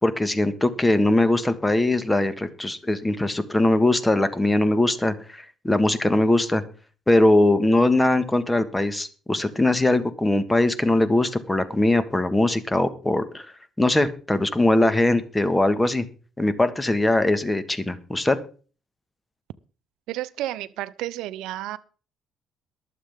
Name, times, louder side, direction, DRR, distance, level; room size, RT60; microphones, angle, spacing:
voice 1, 0.0-6.6 7.1-13.5 13.8-16.0 16.4-18.4, left 1 dB, 15° left, 1.6 m, -21 dB
voice 2, 20.1-21.8, right 15 dB, 85° right, 0.5 m, -31 dB
22.5 x 7.5 x 3.6 m
supercardioid pair, 75°, 0 cm